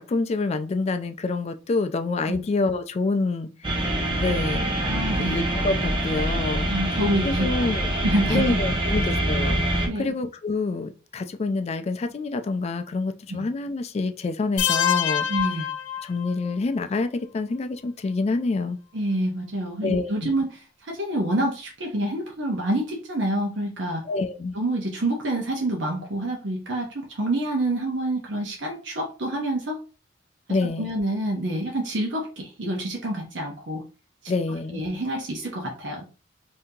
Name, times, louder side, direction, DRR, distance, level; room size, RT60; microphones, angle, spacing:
voice 1, 0.0-4.7 5.2-7.9 8.3-15.3 16.0-18.8 19.8-20.3 24.1-24.5 30.5-30.9 34.3-34.8, left 3 dB, 35° left, 0.3 m, -27 dB
sound 1, 3.6-9.9, right 1 dB, 25° right, 0.7 m, -25 dB
voice 2, 4.8-5.4 6.7-7.7 8.0-8.6 9.9-10.1 13.3-13.5 15.3-15.7 18.9-24.0 24.5-29.8 30.6-33.8 34.7-36.0, right 1 dB, 65° right, 0.8 m, -27 dB
sound 2, 14.6-16.5, left 10 dB, 85° left, 0.6 m, -25 dB
2.7 x 2.7 x 3.6 m
head